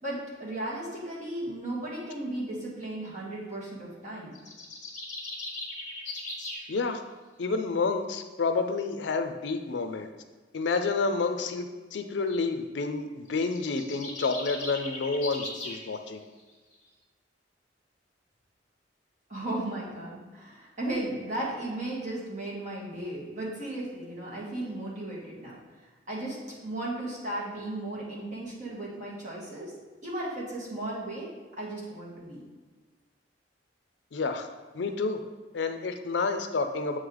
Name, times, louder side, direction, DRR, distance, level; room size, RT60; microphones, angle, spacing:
voice 1, 0.0-4.3 19.3-25.6 26.1-26.4 26.6-29.7 30.0-31.3 31.6-32.4, right 1 dB, 40° right, -6 dB, 1.8 m, -35 dB
sound 1, 4.3-6.7 13.3-15.8, left 2 dB, 40° left, 1.4 m, -38 dB
voice 2, 6.7-7.0 7.4-10.1 10.5-16.2 34.1-34.5 34.7-35.2 35.5-37.0, left 4 dB, 70° left, 7 dB, 0.5 m, -29 dB
7.6 x 3.2 x 3.8 m, 1.3 s
head